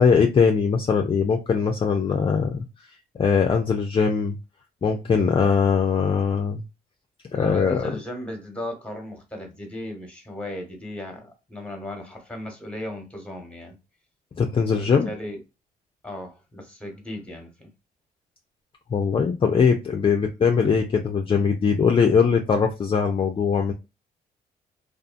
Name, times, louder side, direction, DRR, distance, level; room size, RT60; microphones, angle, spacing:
voice 1, 0.0-2.6 3.2-4.4 4.8-6.6 7.3-7.8 14.4-15.1 18.9-23.7, left 6 dB, 35° left, 0.4 m, -21 dB
voice 2, 7.3-13.8 14.7-15.4 16.0-17.7 20.0-20.2, left 1 dB, 5° left, 1.1 m, -36 dB
2.6 x 2.4 x 2.4 m
cardioid pair, 75°, 16 cm